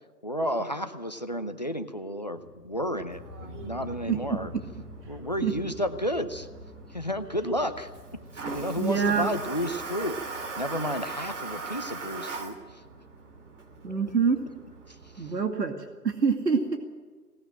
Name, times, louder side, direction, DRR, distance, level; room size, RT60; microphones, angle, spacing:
voice 1, 0.2-4.5 5.1-6.5 6.9-12.8 14.9-15.3, equal, 25° left, 9 dB, 0.7 m, -32 dB
sound 1, 2.4-10.6, equal, 10° right, 4.0 m, -47 dB
Toilet flush, 3.1-15.4, right 4 dB, 45° right, 2.9 m, -41 dB
voice 2, 8.8-9.3 13.8-14.4 15.2-16.8, right 5 dB, 75° right, 4 dB, 2.5 m, -25 dB
19.0 x 18.5 x 8.9 m, 1.4 s
hypercardioid pair, 165°, 49 cm